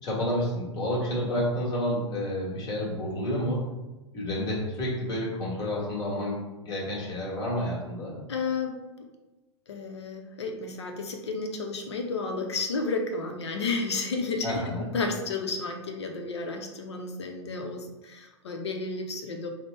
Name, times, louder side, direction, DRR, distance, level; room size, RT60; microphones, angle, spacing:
voice 1, 0.0-3.6 4.1-8.1 14.4-14.9, equal, 30° left, -4 dB, 1.4 m, -30 dB
voice 2, 8.3-8.8 9.7-19.5, left 3 dB, 65° left, 4 dB, 0.7 m, -32 dB
5.1 x 2.1 x 3.2 m, 1.1 s
figure-of-eight pair, 100°, 15 cm